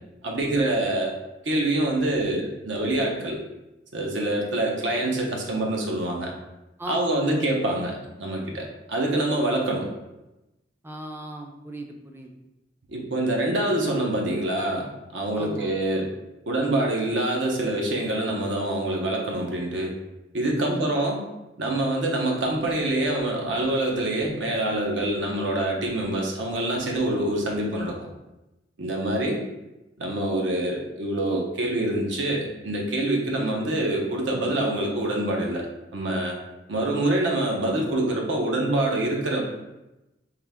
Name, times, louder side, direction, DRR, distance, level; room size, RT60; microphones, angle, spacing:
voice 1, 0.2-1.1 1.4-3.4 3.9-6.3 6.9-9.9 12.9-14.9 15.1-16.1 16.5-19.9 20.3-21.2 21.6-28.0 28.8-29.4 30.0-35.7 35.9-36.4 36.7-39.4, right 1 dB, 80° right, 0 dB, 0.8 m, -25 dB
voice 2, 6.8-7.5 10.8-12.3 15.3-15.7 20.6-20.9, right 1 dB, 10° right, 3 dB, 0.3 m, -36 dB
3.7 x 2.7 x 3.5 m, 0.98 s
head